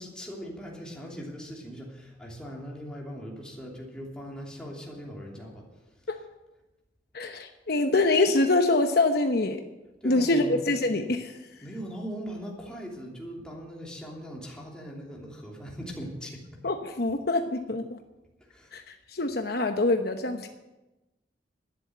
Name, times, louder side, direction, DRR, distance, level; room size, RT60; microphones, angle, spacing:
voice 1, 0.0-6.1 10.0-10.6 11.6-16.6 18.4-18.7, equal, 5° left, -3 dB, 2.9 m, -40 dB
voice 2, 7.1-9.6 10.0-11.3 16.6-18.0 18.7-20.5, left 2 dB, 60° left, 5 dB, 1.0 m, -25 dB
12.0 x 10.0 x 8.0 m, 1.0 s
head